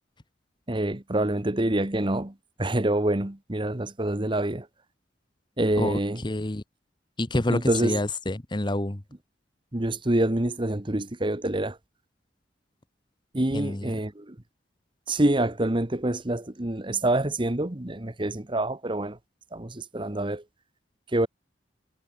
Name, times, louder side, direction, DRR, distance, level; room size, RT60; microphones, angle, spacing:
voice 1, 0.7-2.3 2.6-4.7 5.6-6.2 7.5-8.0 9.7-11.8 13.3-14.3 15.1-19.2 19.5-20.4 21.1-21.3, right 1 dB, 25° right, 1.3 m, -26 dB
voice 2, 5.7-6.6 7.2-9.0 13.5-14.0, left 1 dB, 25° left, 1.1 m, -28 dB
head